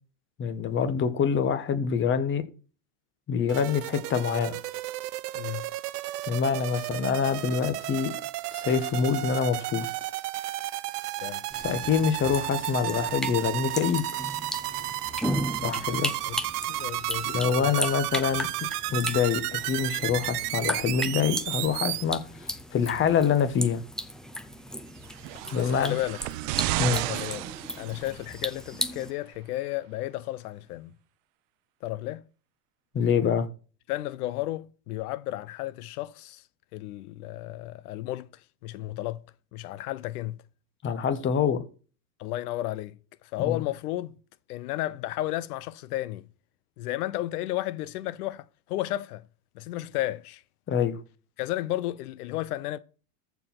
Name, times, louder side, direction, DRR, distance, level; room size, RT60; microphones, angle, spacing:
voice 1, 0.4-2.4 3.3-4.6 6.3-8.1 8.5-9.9 11.6-14.0 15.6-16.1 17.2-18.5 18.9-22.2 22.7-23.8 25.5-26.0 26.8-27.0 32.9-33.5 40.8-41.6 43.5-43.6 50.7-50.9, left 7 dB, 25° left, 1.3 m, -25 dB
sound 1, 3.5-22.0, right 16 dB, 85° right, 0.9 m, -33 dB
voice 2, 5.3-5.7 11.2-11.6 15.6-16.0 16.3-16.4 16.7-17.7 25.6-26.2 26.8-27.5 27.8-30.9 31.8-32.2 33.9-36.4 36.7-39.2 39.5-40.4 42.2-44.2 44.5-46.3 46.8-49.2 49.6-50.4 51.4-52.8, left 15 dB, 75° left, 0.8 m, -33 dB
sound 2, 11.5-29.1, equal, ahead, 0.4 m, -36 dB
sound 3, 25.0-28.4 29.3-29.4, right 18 dB, 55° right, 0.7 m, -32 dB
14.0 x 4.8 x 5.9 m
supercardioid pair, 140°, 45 cm